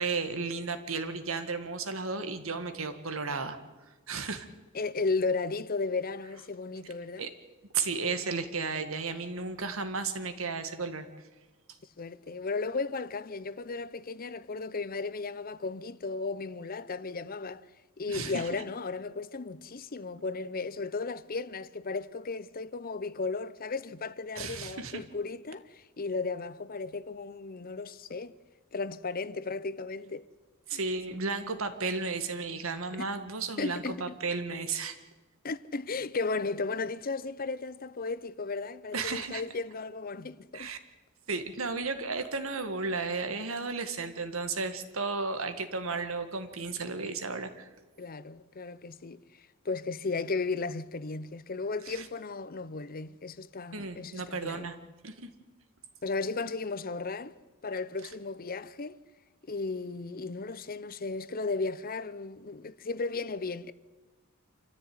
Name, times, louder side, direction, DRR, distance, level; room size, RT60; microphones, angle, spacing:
voice 1, 0.0-3.6 4.1-4.5 7.2-7.3 7.7-11.1 18.1-18.6 24.4-25.0 30.7-35.0 38.9-39.4 40.5-40.8 41.3-47.7 51.9-52.1 53.7-54.8 55.0-55.3, right 4 dB, 70° right, 2.0 m, -34 dB
voice 2, 4.7-7.3 12.0-17.7 18.0-28.4 28.7-30.3 30.7-30.8 33.0-33.1 33.6-34.0 35.4-40.7 48.0-54.7 56.0-57.3 57.6-59.0 59.4-63.7, left 3 dB, 45° left, 0.7 m, -35 dB
27.0 x 14.0 x 9.6 m
head